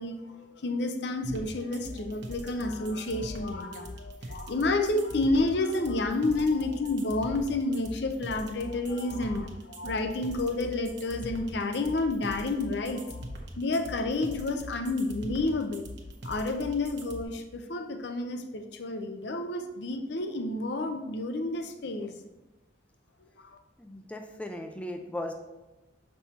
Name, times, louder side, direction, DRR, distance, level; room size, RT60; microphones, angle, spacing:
voice 1, 0.0-13.2 13.6-15.9 16.2-22.1, left 2 dB, 60° left, 7 dB, 0.6 m, -30 dB
sound 1, 1.2-17.2, equal, 60° right, 0.9 m, -41 dB
voice 2, 23.8-25.3, left 1 dB, 5° left, 4 dB, 0.4 m, -37 dB
7.3 x 5.4 x 2.9 m, 1.1 s
head